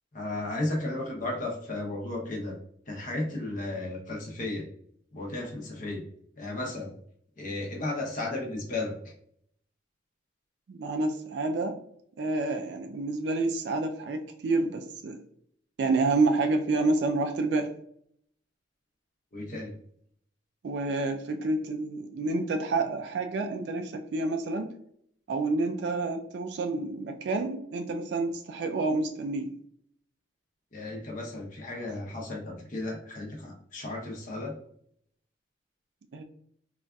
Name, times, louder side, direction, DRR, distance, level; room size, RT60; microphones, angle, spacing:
voice 1, 0.1-2.6 2.9-4.7 5.1-6.0 6.4-6.9 7.4-9.1 19.3-19.7 30.7-34.6, left 2 dB, 45° left, 0 dB, 0.7 m, -34 dB
voice 2, 10.7-11.8 12.2-15.2 15.8-17.7 20.6-24.7 25.3-29.6 36.1-36.2, right 3 dB, 60° right, 6 dB, 0.3 m, -28 dB
3.9 x 2.4 x 2.2 m, 0.67 s
head